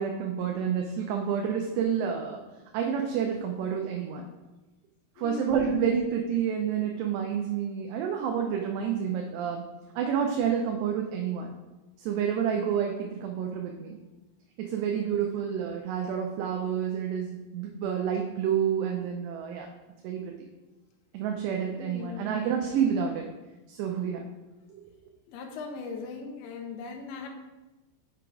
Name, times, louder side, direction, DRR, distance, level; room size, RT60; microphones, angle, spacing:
voice 1, 0.0-2.4 2.7-4.2 5.2-9.6 10.0-11.5 12.0-14.0 14.6-19.7 20.0-20.3 21.1-23.3 23.7-24.3, right 8 dB, 80° right, 2 dB, 2.7 m, -29 dB
voice 2, 5.2-5.8 21.8-22.4 25.3-27.3, left 5 dB, 75° left, 2 dB, 2.6 m, -39 dB
6.8 x 5.9 x 4.8 m, 1.1 s
omnidirectional pair, 5.0 m